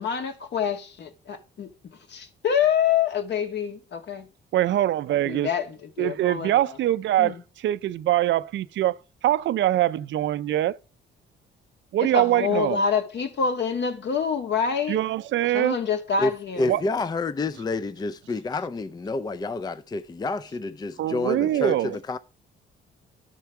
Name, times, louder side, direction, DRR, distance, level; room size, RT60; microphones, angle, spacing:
voice 1, 0.0-1.7 2.1-4.3 5.2-6.5 7.2-7.4 12.0-15.0 15.5-16.8, left 7 dB, 60° left, 1.9 m, -26 dB
voice 2, 4.5-5.5 6.0-8.9 9.2-10.8 11.9-12.8 14.9-15.8 16.7-16.8 21.0-21.9, right 13 dB, 70° right, 0.5 m, -23 dB
voice 3, 16.2-22.2, left 3 dB, 20° left, 0.5 m, -29 dB
11.5 x 4.5 x 5.8 m
cardioid pair, 90°, 20 cm